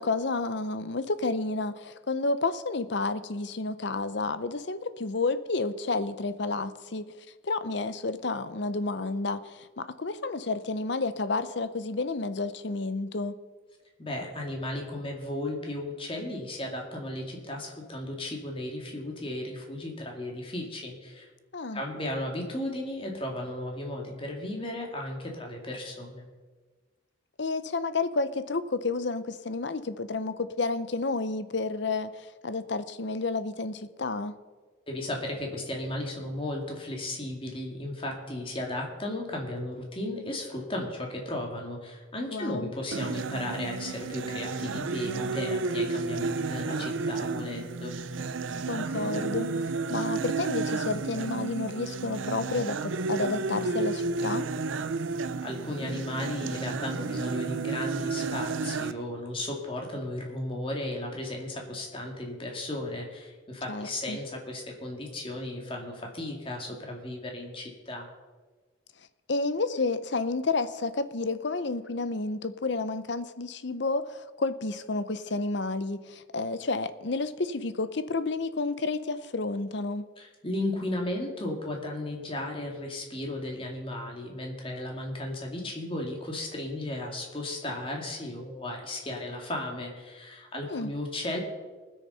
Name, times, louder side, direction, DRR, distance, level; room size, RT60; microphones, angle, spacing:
voice 1, 0.0-7.1 7.4-13.4 21.5-21.8 27.4-34.3 42.3-42.7 48.7-49.5 49.9-54.5 63.7-64.2 69.3-80.0 90.7-90.9, left 3 dB, 60° left, 13 dB, 0.7 m, -30 dB
voice 2, 14.0-21.3 21.7-26.3 34.9-47.9 55.4-68.1 80.2-91.4, left 1 dB, 25° left, 1 dB, 2.2 m, -35 dB
sound 1, 42.9-58.9, right 4 dB, 75° right, 0.6 m, -32 dB
20.0 x 6.6 x 5.5 m, 1.3 s
head